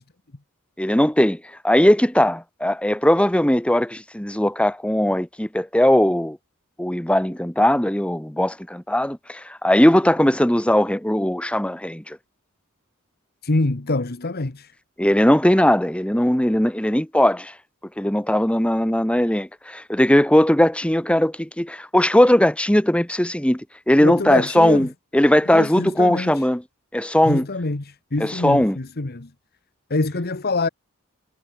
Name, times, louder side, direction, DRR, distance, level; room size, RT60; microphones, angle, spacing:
voice 1, 0.8-1.4 1.6-6.4 6.8-12.2 15.0-17.5 18.0-23.6 23.9-26.6 26.9-27.4 28.2-28.8, left 1 dB, 5° left, 1.2 m, -19 dB
voice 2, 13.4-14.7 24.0-24.9 25.5-26.5 27.2-29.3 29.9-30.7, left 2 dB, 45° left, 1.2 m, -25 dB
head